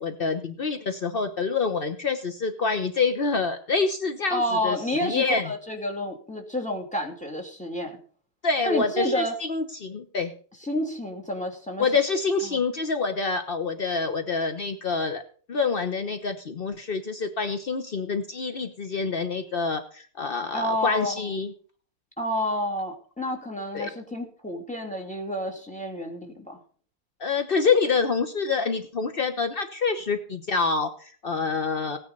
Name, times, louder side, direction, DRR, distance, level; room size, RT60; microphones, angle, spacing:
voice 1, 0.0-5.5 8.4-10.3 11.8-15.2 15.5-21.5 23.7-23.9 27.2-32.0, left 4 dB, 60° left, 8 dB, 0.5 m, -26 dB
voice 2, 4.3-8.0 8.6-9.3 10.6-11.8 12.4-12.6 20.5-21.3 22.2-26.6, equal, 5° left, 3 dB, 2.4 m, -29 dB
17.0 x 9.7 x 5.3 m, 0.44 s
omnidirectional pair, 2.4 m